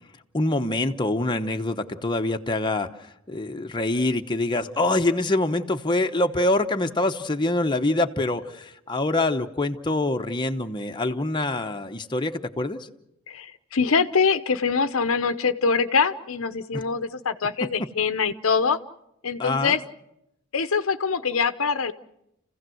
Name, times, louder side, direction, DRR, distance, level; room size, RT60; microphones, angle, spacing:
voice 1, 0.3-12.8 16.7-16.8 17.6-17.7 19.4-19.8, left 2 dB, 20° left, 5 dB, 1.0 m, -25 dB
voice 2, 13.3-18.8 19.2-19.8 20.5-21.9, left 5 dB, 70° left, 12 dB, 0.9 m, -24 dB
30.0 x 16.0 x 7.8 m, 0.82 s
head